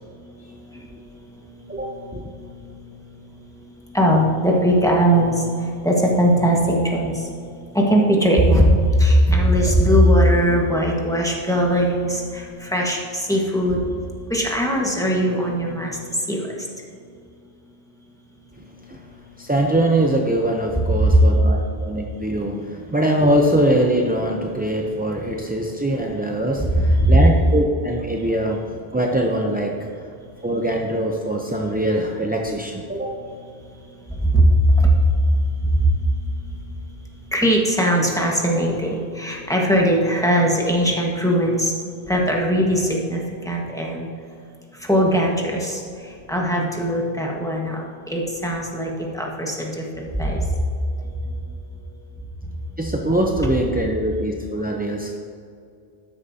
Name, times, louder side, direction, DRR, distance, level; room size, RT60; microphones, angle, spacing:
voice 1, 1.7-2.3 18.9-19.0 19.4-29.9 30.4-33.2 52.8-55.2, right 1 dB, 15° right, 0 dB, 0.4 m, -22 dB
voice 2, 3.9-5.3 5.8-6.6 6.9-7.1 7.7-13.8 14.3-15.9 16.3-16.4 21.0-21.1 26.7-27.1 34.3-34.4 37.3-41.7 42.1-43.2 43.4-44.1 44.9-45.8 46.3-47.8 48.1-48.9 49.1-49.7 50.2-50.5, equal, 5° left, -2 dB, 1.4 m, -19 dB
13.0 x 10.0 x 2.8 m, 2.4 s
omnidirectional pair, 1.1 m